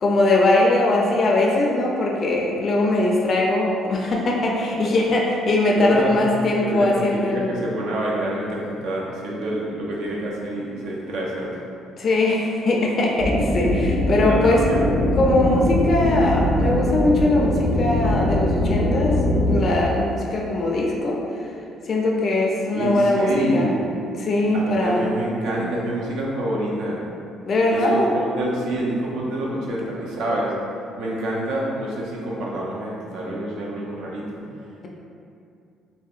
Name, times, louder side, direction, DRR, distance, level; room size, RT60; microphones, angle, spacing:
voice 1, 0.0-7.6 12.0-14.6 15.1-21.2 21.9-23.7 24.2-25.1 25.6-25.7 27.5-28.1, left 2 dB, 50° left, -2 dB, 0.3 m, -21 dB
voice 2, 5.8-6.2 6.6-11.5 14.1-14.8 22.7-23.9 24.5-27.1 27.6-27.9 28.1-30.5 31.0-34.4, right 1 dB, 75° right, -4 dB, 0.4 m, -27 dB
sound 1, 13.2-19.6, left 1 dB, 40° right, 0.8 m, -21 dB
2.6 x 2.1 x 2.4 m, 2.5 s
supercardioid pair, 70°, 0 cm